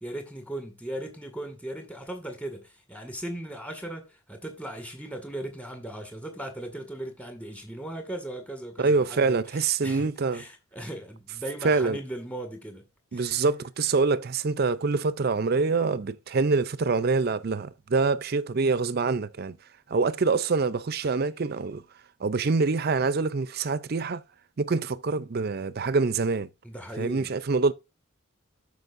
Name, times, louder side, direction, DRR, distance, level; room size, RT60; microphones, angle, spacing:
voice 1, 0.0-12.8 13.1-13.4 26.6-27.3, right 1 dB, 5° left, 1.9 m, -38 dB
voice 2, 8.8-10.4 11.6-12.0 13.1-19.6 19.9-21.8 22.2-24.2 24.6-26.5 27.0-27.7, right 4 dB, 45° right, 0.5 m, -25 dB
13.0 x 5.2 x 2.5 m
head